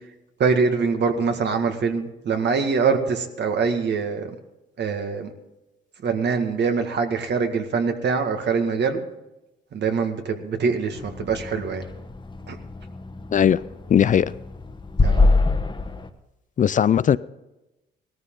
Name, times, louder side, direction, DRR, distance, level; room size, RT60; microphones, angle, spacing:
voice 1, 0.4-4.3 4.8-5.3 6.0-9.0 9.7-11.8 12.5-12.6 15.0-15.3, right 5 dB, 60° right, 1.9 m, -24 dB
sound 1, 10.9-16.1, left 3 dB, 25° left, 1.2 m, -25 dB
voice 2, 13.9-14.3 16.6-17.2, left 8 dB, 40° left, 0.4 m, -18 dB
18.0 x 13.5 x 3.9 m
cardioid pair, 90°, 20 cm